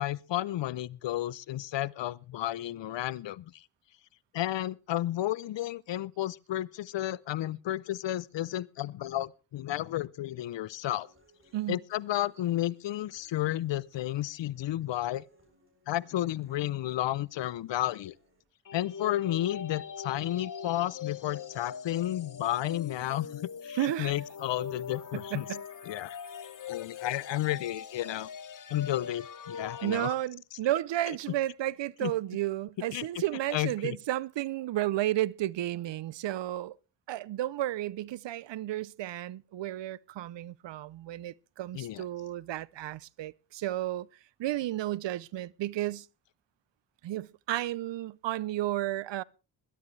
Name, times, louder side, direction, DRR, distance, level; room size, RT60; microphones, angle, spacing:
voice 1, 0.0-3.6 4.3-11.1 11.7-15.2 15.9-18.1 18.7-25.5 25.8-26.2 26.7-28.3 28.7-30.1 32.0-32.1 32.9-33.2 33.5-34.0 41.7-42.0, left 14 dB, 85° left, 0.6 m, -32 dB
Human voice / Acoustic guitar, 10.4-18.4, left 1 dB, 30° right, 7.9 m, -66 dB
sound 1, 18.6-29.9, left 7 dB, 45° left, 1.0 m, -42 dB
voice 2, 23.7-24.1 25.1-25.6 29.8-36.8 37.1-44.1 44.4-46.1 47.0-49.2, right 14 dB, 80° right, 0.6 m, -32 dB
21.0 x 12.0 x 3.2 m
cardioid pair, 75°, 43 cm